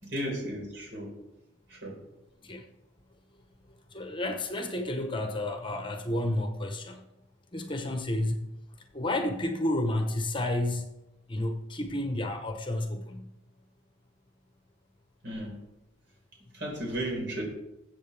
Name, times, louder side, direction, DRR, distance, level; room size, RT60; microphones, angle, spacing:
voice 1, 0.0-1.1 1.7-2.0 15.2-15.5 16.5-17.4, right 1 dB, 65° right, -2 dB, 4.6 m, -34 dB
voice 2, 3.9-7.1 7.5-8.4 8.9-10.9 11.3-13.3, left 1 dB, 25° left, 5 dB, 1.1 m, -31 dB
21.0 x 8.0 x 3.5 m, 0.93 s
head